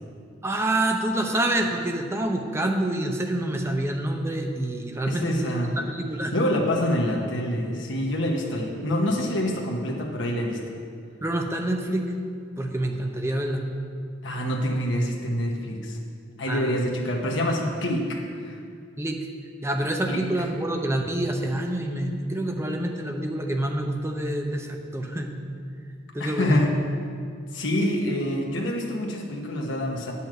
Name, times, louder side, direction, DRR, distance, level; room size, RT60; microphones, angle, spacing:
voice 1, 0.4-6.3 11.2-12.1 12.6-13.7 16.5-16.9 19.0-19.3 19.6-25.4 26.1-26.6 27.8-27.9, right 1 dB, 15° right, 3 dB, 0.8 m, -27 dB
voice 2, 5.0-5.7 6.3-10.6 14.2-16.0 16.4-18.6 20.1-20.2 26.2-26.7 27.5-30.1, left 1 dB, 65° left, -1 dB, 1.2 m, -26 dB
9.1 x 5.6 x 7.6 m, 2.2 s
head